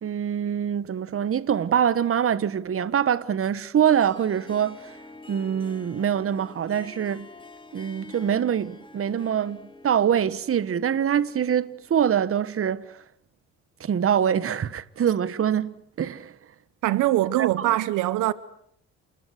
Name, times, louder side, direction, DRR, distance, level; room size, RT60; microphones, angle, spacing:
voice 1, 0.0-4.9 5.3-7.3 7.7-12.8 13.8-16.3 17.4-17.6, right 9 dB, 45° right, 1.3 m, -24 dB
Harp, 3.8-12.3, left 2 dB, 15° left, 3.8 m, -47 dB
voice 2, 16.8-18.3, right 15 dB, 85° right, 1.1 m, -22 dB
29.0 x 21.0 x 8.2 m
cardioid pair, 90°, 30 cm